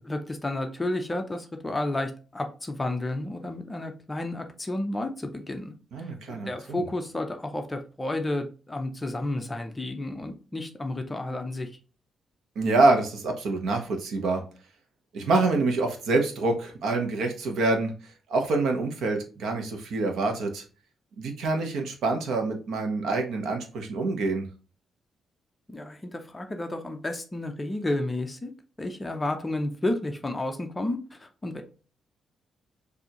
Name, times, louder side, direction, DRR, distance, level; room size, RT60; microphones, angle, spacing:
voice 1, 0.0-5.7 6.0-11.7 25.7-28.5 28.8-31.6, left 1 dB, 15° left, 6 dB, 0.5 m, -31 dB
voice 2, 5.9-6.8 12.5-14.4 15.1-17.9 18.3-20.6 21.2-24.5, right 3 dB, 70° right, 4 dB, 1.0 m, -26 dB
6.6 x 2.7 x 2.9 m, 0.36 s
wide cardioid pair, 175°, 0 cm